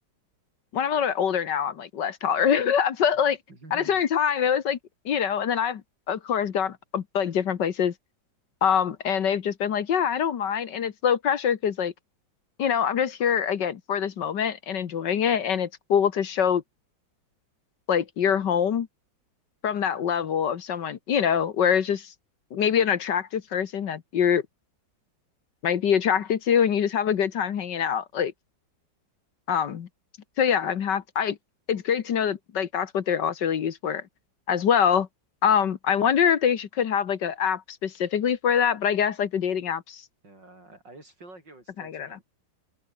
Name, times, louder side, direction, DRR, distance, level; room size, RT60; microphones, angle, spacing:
voice 1, 0.7-3.4 3.7-4.8 5.1-5.8 6.1-7.9 8.6-11.9 12.6-16.6 17.9-18.9 19.6-22.1 22.5-24.4 25.6-28.3 29.5-29.9 30.4-31.4 31.7-34.0 34.5-35.1 35.4-40.0 41.8-42.1, left 8 dB, 65° left, 1.9 m, -24 dB
voice 2, 3.5-4.4 40.2-42.2, right 2 dB, 65° right, 8.8 m, -49 dB
open air
omnidirectional pair, 2.1 m